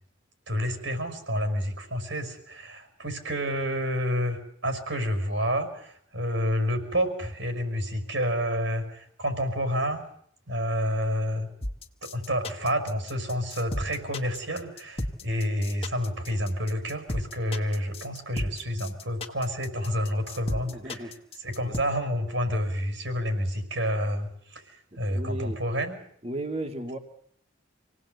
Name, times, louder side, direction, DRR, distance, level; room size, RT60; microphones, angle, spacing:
voice 1, 0.5-10.0 10.5-11.5 12.0-21.1 21.4-26.0, equal, 70° right, 7 dB, 5.8 m, -29 dB
sound 1, 11.6-21.8, left 1 dB, 30° left, 1.9 m, -34 dB
voice 2, 20.7-21.1 21.6-21.8 25.1-25.6 26.2-27.0, right 1 dB, 30° right, 5 dB, 2.3 m, -34 dB
27.5 x 18.5 x 8.2 m, 0.67 s
head